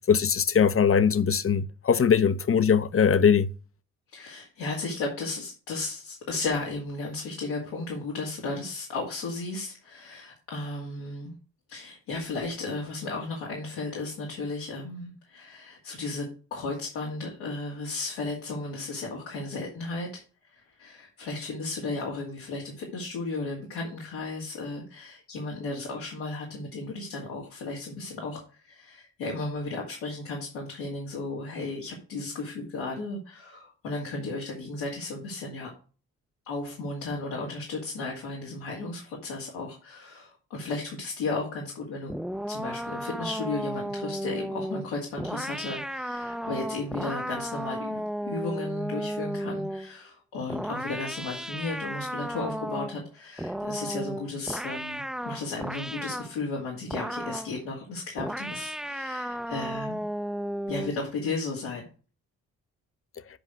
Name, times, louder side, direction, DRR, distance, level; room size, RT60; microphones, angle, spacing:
voice 1, 0.1-3.5, left 7 dB, 35° left, 0.9 m, -21 dB
voice 2, 4.1-11.3 11.7-20.1 20.5-35.7 36.4-42.1 42.5-48.0 48.3-60.0 60.7-61.8, left 3 dB, 85° left, 2.4 m, -34 dB
sound 1, 42.1-49.9 50.5-53.0 53.4-56.3 56.9-57.6 58.2-61.0, equal, ahead, 0.6 m, -34 dB
8.0 x 4.9 x 6.3 m
hypercardioid pair, 45°, 36 cm